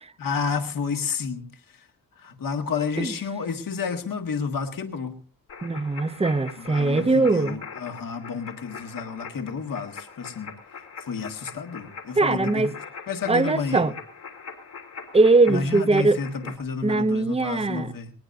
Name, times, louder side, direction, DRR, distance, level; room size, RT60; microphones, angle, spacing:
voice 1, 0.2-1.5 2.2-5.1 6.6-10.5 11.0-12.7 13.1-13.9 15.5-16.3 16.6-18.1, left 5 dB, 70° left, 1.7 m, -30 dB
sound 1, 5.5-16.6, left 5 dB, 90° left, 3.4 m, -42 dB
voice 2, 5.6-7.6 12.1-12.7 13.3-13.9 15.1-16.5 16.8-17.9, right 3 dB, 15° right, 0.8 m, -21 dB
20.0 x 19.0 x 2.6 m
cardioid pair, 65°, 35 cm